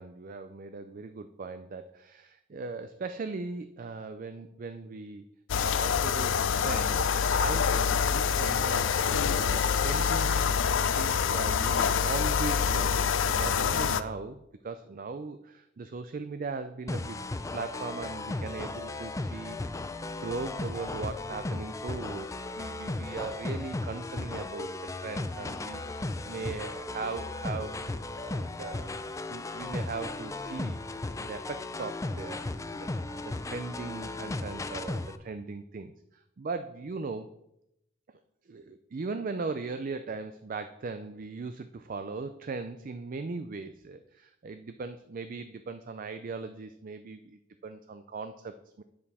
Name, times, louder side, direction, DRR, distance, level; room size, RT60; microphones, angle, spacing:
voice 1, 0.0-5.2 5.6-10.5 10.9-17.2 17.5-19.7 20.2-24.7 25.0-28.9 29.3-30.8 31.2-32.9 33.1-37.3 38.5-48.8, right 4 dB, 45° right, 10 dB, 0.4 m, -39 dB
sound 1, 5.5-14.0, left 6 dB, 85° left, 0.4 m, -26 dB
sound 2, 16.9-35.2, left 2 dB, 15° left, 0.4 m, -36 dB
9.4 x 7.4 x 4.2 m, 0.82 s
head